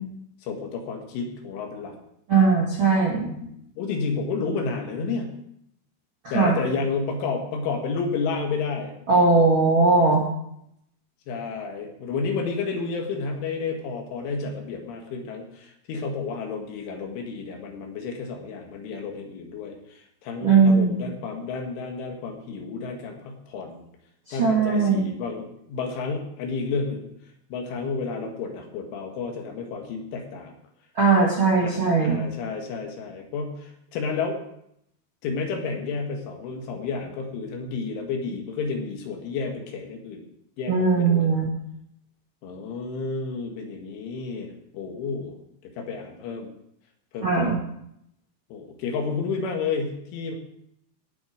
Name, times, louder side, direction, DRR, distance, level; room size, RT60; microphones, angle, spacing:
voice 1, 0.4-2.0 3.4-5.3 6.3-8.9 11.3-23.9 24.3-27.0 27.5-30.5 31.6-34.4 35.2-40.2 40.6-41.3 42.4-45.4 45.6-46.5 47.1-47.6 48.5-50.3, left 4 dB, 80° left, 2 dB, 4.3 m, -31 dB
voice 2, 2.3-3.3 6.2-6.6 9.1-10.2 20.4-21.1 24.3-25.1 30.9-32.2 40.7-41.4 47.2-47.6, right 4 dB, 50° right, -4 dB, 1.6 m, -19 dB
17.5 x 7.3 x 5.1 m, 0.74 s
omnidirectional pair, 5.6 m